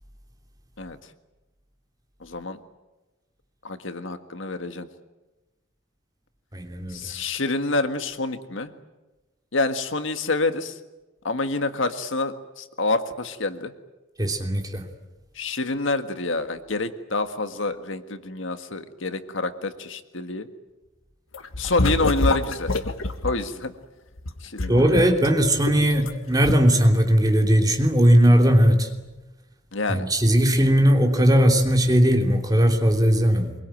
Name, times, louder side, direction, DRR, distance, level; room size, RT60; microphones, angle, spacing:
voice 1, 2.2-2.6 3.6-4.9 6.9-8.7 9.5-10.8 11.2-13.7 15.4-20.5 21.6-22.7 23.2-23.7 24.4-25.1 29.7-30.1, left 3 dB, 70° left, 9 dB, 1.7 m, -27 dB
voice 2, 6.5-7.0 14.2-14.8 24.7-28.9 29.9-33.5, equal, 20° right, 4 dB, 3.1 m, -18 dB
sound 1, 21.3-23.4 24.2-26.1 26.4-26.5, left 2 dB, 85° left, 1.7 m, -26 dB
24.5 x 23.0 x 9.1 m, 1.1 s
head